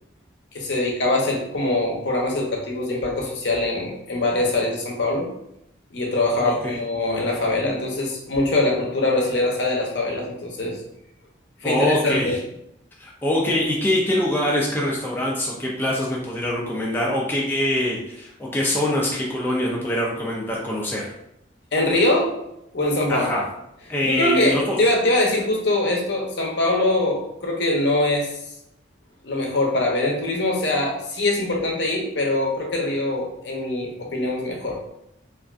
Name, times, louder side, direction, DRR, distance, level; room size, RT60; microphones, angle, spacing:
voice 1, 0.5-5.3 5.9-10.8 11.6-12.4 21.7-22.3 22.7-23.3 24.0-28.3 29.2-34.9, left 2 dB, 65° left, -1 dB, 0.7 m, -23 dB
voice 2, 6.4-6.8 11.6-12.4 13.0-21.1 23.1-23.5 23.9-24.8, left 1 dB, 10° left, -4 dB, 0.4 m, -24 dB
3.3 x 2.5 x 2.4 m, 0.81 s
head